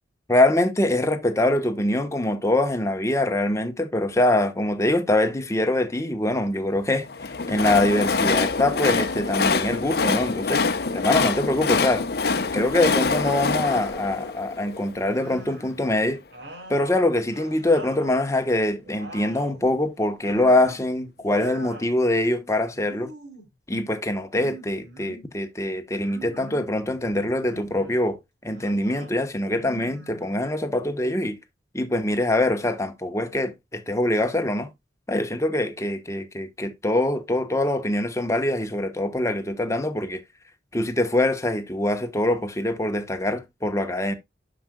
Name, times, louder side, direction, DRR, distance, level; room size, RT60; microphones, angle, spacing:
voice 1, 0.3-12.1 12.5-16.2 16.7-23.1 23.7-31.4 31.7-34.7 35.1-40.2 40.7-44.1, left 1 dB, 15° left, 1.1 m, -24 dB
Train, 7.0-15.2, left 4 dB, 60° left, 0.8 m, -25 dB
sound 1, 15.0-15.8 16.3-18.3 18.7-19.6 20.2-20.9 21.2-21.9 22.7-23.5 24.3-25.3 26.0-26.7 27.4-28.0 28.5-29.1 29.5-30.6, right 1 dB, 85° right, 2.9 m, -43 dB
12.5 x 5.1 x 2.2 m
head